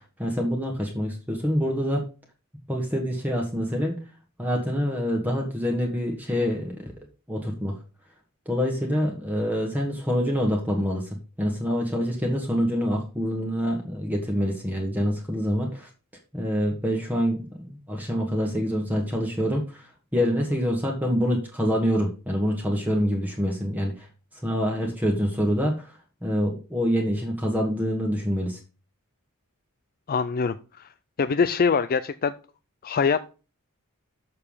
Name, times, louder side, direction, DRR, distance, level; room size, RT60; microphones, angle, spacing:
voice 1, 0.2-2.1 2.7-4.0 4.4-6.8 7.3-7.7 8.5-11.1 11.4-15.9 16.3-19.8 20.1-24.1 24.4-25.7 26.2-28.6, equal, 10° right, 1.4 m, -26 dB
voice 2, 30.1-30.9 31.2-32.3 32.8-33.3, left 5 dB, 40° left, 0.4 m, -24 dB
6.8 x 6.8 x 5.5 m
head